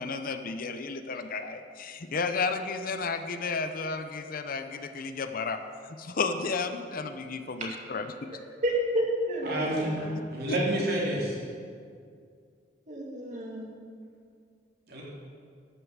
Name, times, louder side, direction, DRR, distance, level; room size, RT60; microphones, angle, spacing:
voice 1, 0.0-5.6 6.0-8.3 10.5-10.6, left 4 dB, 50° left, 9 dB, 0.6 m, -32 dB
voice 2, 8.6-10.1 12.9-13.7, right 1 dB, 40° right, -2 dB, 2.3 m, -30 dB
voice 3, 9.5-9.9 10.3-11.3 14.9-15.0, right 1 dB, 60° right, -4 dB, 3.1 m, -28 dB
12.0 x 6.8 x 7.2 m, 2.2 s
head